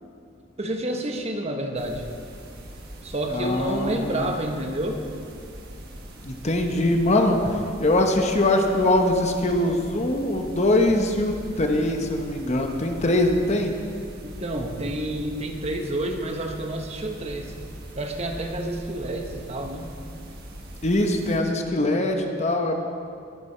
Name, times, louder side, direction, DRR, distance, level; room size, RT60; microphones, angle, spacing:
voice 1, 0.6-2.0 3.0-5.0 14.2-17.5 18.0-19.9, right 1 dB, 35° right, 3 dB, 1.0 m, -29 dB
sound 1, 1.7-21.4, right 1 dB, 55° right, 1.6 m, -41 dB
voice 2, 3.3-4.3 6.2-13.7 20.8-22.8, left 1 dB, 35° left, 4 dB, 1.0 m, -22 dB
20.5 x 6.9 x 4.5 m, 2.4 s
head